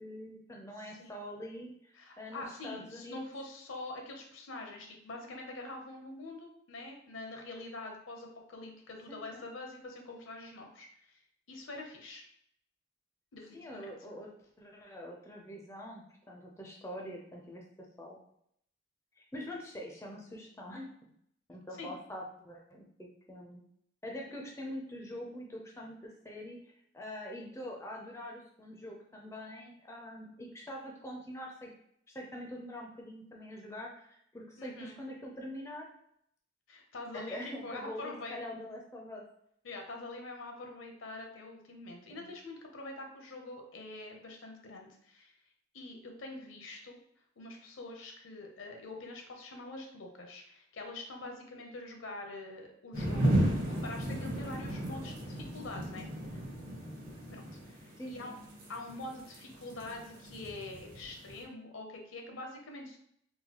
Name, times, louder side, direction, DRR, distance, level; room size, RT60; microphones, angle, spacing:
voice 1, 0.0-3.2 9.1-9.4 13.5-14.3 14.6-17.6 18.0-18.2 19.2-20.9 21.5-23.6 24.0-31.7 32.1-35.9 37.1-39.2 42.1-42.3 56.2-56.5 58.0-58.4, left 1 dB, 15° left, -1 dB, 0.4 m, -44 dB
voice 2, 1.9-11.2 11.5-12.2 13.3-13.9 21.8-21.9 34.6-35.0 36.7-38.4 39.6-45.3 45.7-47.0 47.4-56.1 57.3-58.4 58.7-63.0, left 2 dB, 75° left, 3 dB, 0.7 m, -45 dB
sound 1, 52.9-61.4, right 1 dB, 45° right, 0.8 m, -34 dB
3.9 x 2.2 x 2.9 m, 0.69 s
head